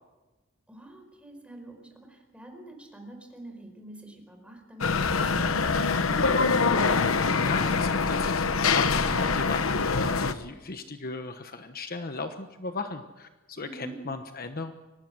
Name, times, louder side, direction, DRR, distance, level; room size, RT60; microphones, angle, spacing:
voice 1, 0.7-6.8 13.6-14.0, right 1 dB, 5° right, 3 dB, 4.9 m, -46 dB
sound 1, 4.8-10.3, left 4 dB, 85° left, 1.1 m, -24 dB
voice 2, 7.4-14.7, left 3 dB, 45° left, 7 dB, 1.1 m, -36 dB
24.0 x 19.0 x 6.3 m, 1.1 s
head